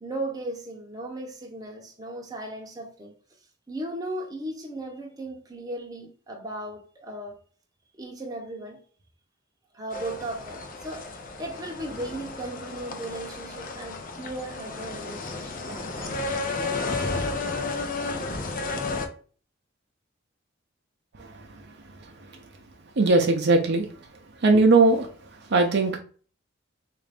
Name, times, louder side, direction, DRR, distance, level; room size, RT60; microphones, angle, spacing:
voice 1, 0.0-3.1 3.7-7.4 8.0-8.8 9.7-16.2, right 1 dB, 20° right, 0.7 m, -36 dB
sound 1, 9.9-19.1, left 3 dB, 45° left, 0.5 m, -32 dB
voice 2, 23.0-23.9 24.4-25.1 25.5-26.0, right 3 dB, 60° right, 0.6 m, -19 dB
3.7 x 2.5 x 3.3 m
head